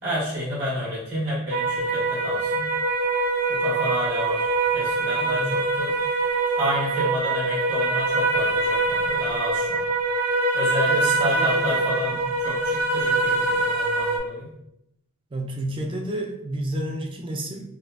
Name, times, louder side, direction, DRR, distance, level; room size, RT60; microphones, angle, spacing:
voice 1, 0.0-2.7 3.5-4.5 4.7-5.9 6.6-9.8 10.5-14.5, equal, 55° right, -8 dB, 1.4 m, -30 dB
sound 1, 1.5-14.2, right 2 dB, 85° right, 0.7 m, -24 dB
voice 2, 5.2-5.5 10.9-11.1 11.4-11.8 12.1-12.2 15.3-17.6, right 1 dB, 25° right, 3 dB, 0.4 m, -30 dB
4.1 x 2.3 x 2.5 m, 0.83 s
head